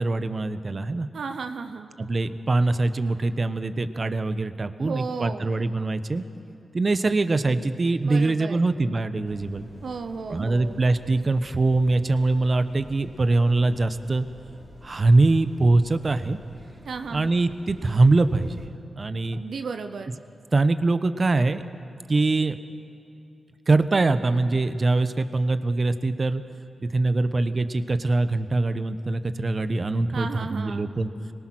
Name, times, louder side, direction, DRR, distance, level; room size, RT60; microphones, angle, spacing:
voice 1, 0.0-1.1 2.0-6.2 6.7-9.7 10.3-14.3 14.8-16.4 17.1-18.6 19.0-19.4 20.5-21.6 22.1-22.6 23.7-26.4 26.9-31.1, right 2 dB, 45° right, 11 dB, 1.0 m, -23 dB
voice 2, 1.1-1.9 4.8-5.5 8.0-8.6 9.8-10.8 16.8-17.3 19.3-20.1 30.1-30.9, right 5 dB, 75° right, 7 dB, 0.8 m, -34 dB
sound 1, 9.2-18.7, left 1 dB, 35° left, 3.3 m, -48 dB
25.0 x 19.0 x 6.3 m, 2.6 s
supercardioid pair, 45°, 0 cm